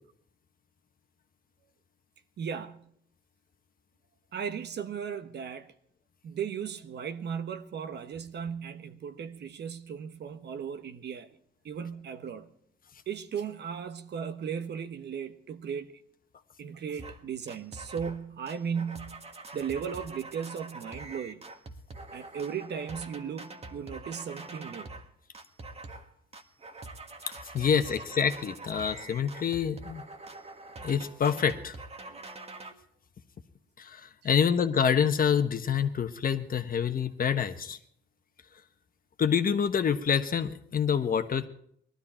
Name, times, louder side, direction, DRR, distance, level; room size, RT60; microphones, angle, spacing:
voice 1, 2.4-2.9 4.3-5.7 6.2-11.3 11.6-12.5 13.1-15.9 16.6-19.2 19.5-21.4 22.1-24.9 32.1-32.2, right 7 dB, 60° right, 1.2 m, -36 dB
sound 1, 17.0-17.2 17.5-18.2 18.5-25.1 25.3-26.1 26.3-32.7, right 2 dB, 30° right, 1.6 m, -45 dB
voice 2, 27.5-30.0 30.8-31.7 33.8-37.8 39.2-41.5, left 7 dB, 45° left, 1.2 m, -27 dB
18.5 x 13.0 x 4.4 m
cardioid pair, 90°, 20 cm